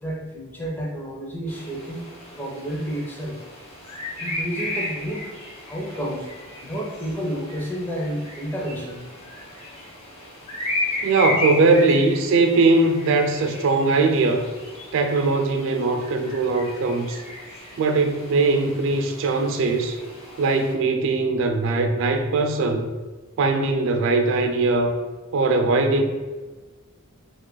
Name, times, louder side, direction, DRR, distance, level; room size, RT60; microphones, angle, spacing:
voice 1, 0.0-2.0 2.3-3.4 4.2-5.3 5.7-6.3 6.6-9.0, equal, 10° left, 0.5 m, -30 dB
sound 1, 1.5-20.7, left 2 dB, 30° left, 1.0 m, -35 dB
voice 2, 11.0-14.5 14.9-17.2 17.8-20.0 20.4-22.9 23.4-25.0 25.3-26.0, right 3 dB, 65° right, 0.3 m, -20 dB
2.8 x 2.4 x 3.7 m
head